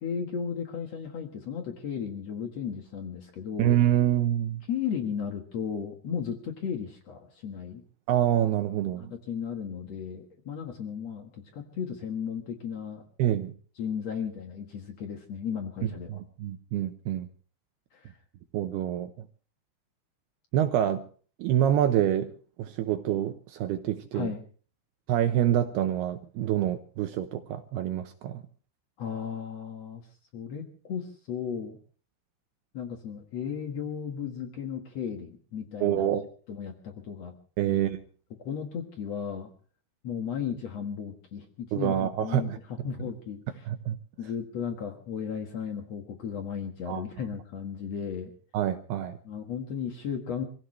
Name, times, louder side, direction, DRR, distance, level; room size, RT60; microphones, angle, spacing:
voice 1, 0.0-3.8 4.7-7.8 9.1-13.0 13.8-16.2 17.9-18.1 24.1-24.4 29.0-30.0 30.3-31.8 32.7-36.1 36.5-37.3 37.7-37.8 38.4-39.5 40.0-43.7 44.2-48.3 49.2-50.4, left 7 dB, 90° left, 5 dB, 1.4 m, -35 dB
voice 2, 3.6-4.6 8.1-9.1 13.2-13.5 15.8-17.3 18.5-19.1 20.5-21.0 21.4-22.3 22.6-24.3 25.1-28.4 35.8-36.3 37.6-38.0 41.7-42.6 43.7-44.0 46.9-47.0 48.5-49.2, right 11 dB, 80° right, 7 dB, 2.3 m, -26 dB
26.0 x 16.5 x 3.2 m, 0.40 s
omnidirectional pair, 5.7 m